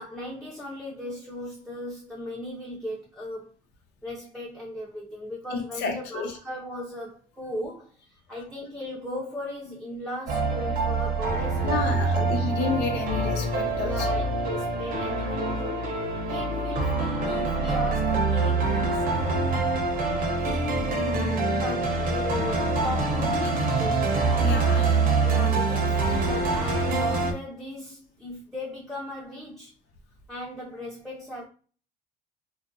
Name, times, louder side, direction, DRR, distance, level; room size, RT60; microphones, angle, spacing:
voice 1, 0.0-3.5 4.0-12.4 13.8-15.8 16.3-19.8 21.1-24.1 25.2-29.7 30.3-31.5, left 1 dB, ahead, 0.6 m, -37 dB
voice 2, 5.5-6.4 11.6-14.2 24.4-25.0, left 5 dB, 80° left, 0.8 m, -31 dB
sound 1, 10.3-27.3, right 3 dB, 55° right, 0.8 m, -25 dB
2.5 x 2.2 x 2.6 m
cardioid pair, 110°, 17 cm